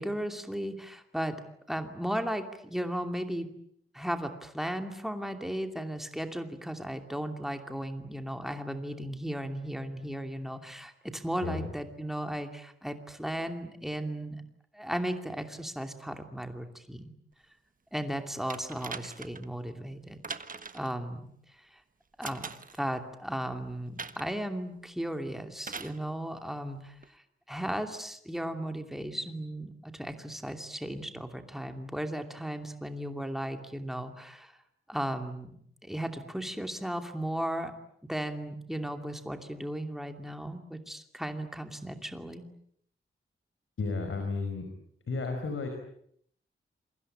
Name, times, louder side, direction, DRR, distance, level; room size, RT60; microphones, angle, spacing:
voice 1, 0.0-1.4 1.7-3.5 3.9-14.4 14.7-17.1 17.9-20.2 20.7-21.3 21.6-21.8 22.2-22.5 22.8-27.2 27.5-34.6 34.9-35.5 35.8-37.7 38.1-42.5, equal, ahead, 6 dB, 2.7 m, -36 dB
sound 1, 18.5-19.5 20.2-20.9 22.2-22.8 24.0-24.4 25.6-26.0 27.0-27.1, right 4 dB, 40° right, 1.4 m, -41 dB
voice 2, 43.8-44.7 45.1-45.7, left 4 dB, 70° left, 4 dB, 5.2 m, -32 dB
28.0 x 24.0 x 8.8 m, 0.69 s
wide cardioid pair, 165°, 21 cm